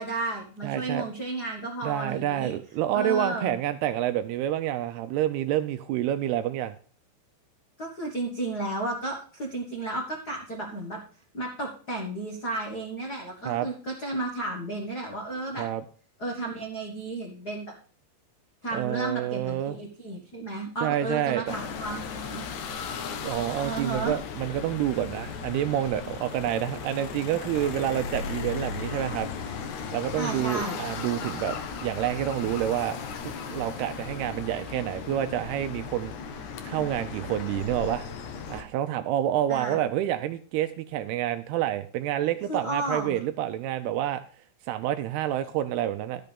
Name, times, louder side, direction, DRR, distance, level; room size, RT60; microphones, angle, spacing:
voice 1, 0.0-2.5 2.9-3.5 7.8-11.0 11.3-15.6 16.2-17.7 18.6-22.4 23.6-24.2 30.2-30.8 39.5-39.8 42.5-43.2, right 2 dB, 65° left, 0 dB, 0.9 m, -33 dB
voice 2, 0.6-1.1 1.8-6.7 13.5-13.7 15.6-15.8 18.7-19.8 20.8-21.4 23.2-31.6 31.8-33.0 33.5-36.1 36.6-38.1 38.5-44.2 44.6-46.2, right 12 dB, 80° right, 10 dB, 2.4 m, -28 dB
sound 1, 21.5-38.6, left 5 dB, 85° left, 1.6 m, -36 dB
12.0 x 6.7 x 5.2 m, 0.43 s
omnidirectional pair, 5.0 m